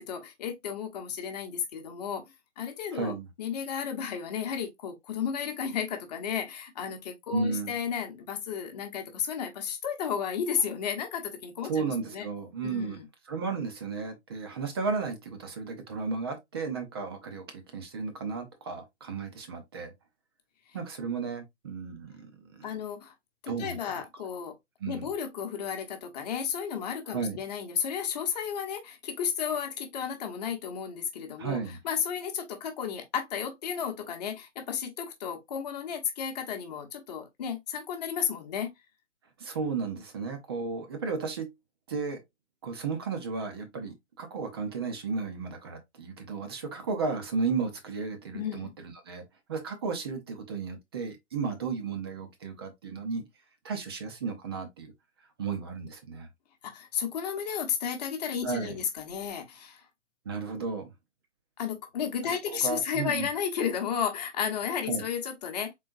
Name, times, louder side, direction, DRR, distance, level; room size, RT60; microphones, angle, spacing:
voice 1, 0.0-2.2 2.6-12.3 12.6-13.0 22.6-23.1 23.4-24.5 24.9-31.6 31.8-38.7 48.3-48.7 56.6-59.9 61.6-65.7, left 7 dB, 35° left, 1.0 m, -33 dB
voice 2, 2.9-3.3 7.3-7.7 11.6-13.0 13.3-19.9 20.7-22.7 23.5-23.8 24.8-25.1 27.1-27.4 31.4-31.8 39.4-41.5 41.9-42.2 42.6-49.2 49.5-53.2 53.6-54.9 55.4-56.3 58.4-58.7 60.3-60.9 62.2-62.4 62.6-63.3 64.9-65.0, right 4 dB, 20° right, 0.5 m, -34 dB
3.8 x 3.5 x 2.4 m
figure-of-eight pair, 140°, 36 cm